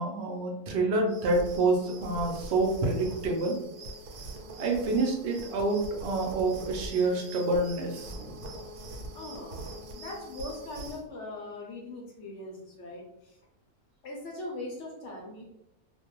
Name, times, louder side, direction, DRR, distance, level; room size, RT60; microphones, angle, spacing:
voice 1, 0.0-3.6 4.6-8.3, right 2 dB, 65° right, 0 dB, 0.7 m, -28 dB
sound 1, 1.1-11.0, right 1 dB, 90° right, 1.1 m, -43 dB
voice 2, 9.1-13.4 14.0-15.4, left 2 dB, 65° left, -1 dB, 0.7 m, -41 dB
2.5 x 2.2 x 2.9 m, 0.84 s
omnidirectional pair, 1.6 m